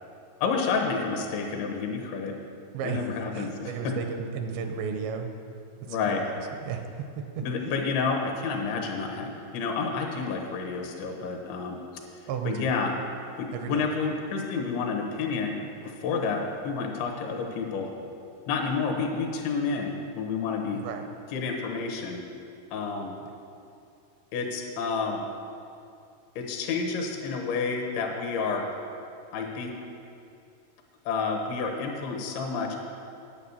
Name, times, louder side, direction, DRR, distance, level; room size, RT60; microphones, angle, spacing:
voice 1, 0.4-2.4 2.8-3.9 5.9-6.2 7.4-11.8 12.5-12.9 13.4-15.6 15.8-17.9 18.5-20.8 21.3-22.2 22.7-23.1 24.3-25.3 26.4-28.7 29.3-29.7 31.1-32.8, left 5 dB, 80° left, 2 dB, 3.6 m, -29 dB
voice 2, 2.7-3.1 3.3-5.3 5.9-7.8 12.3-12.7 13.5-13.9 20.7-21.0 23.2-23.3, right 6 dB, 80° right, 5 dB, 2.8 m, -34 dB
11.0 x 9.0 x 7.3 m, 2.5 s
omnidirectional pair, 5.3 m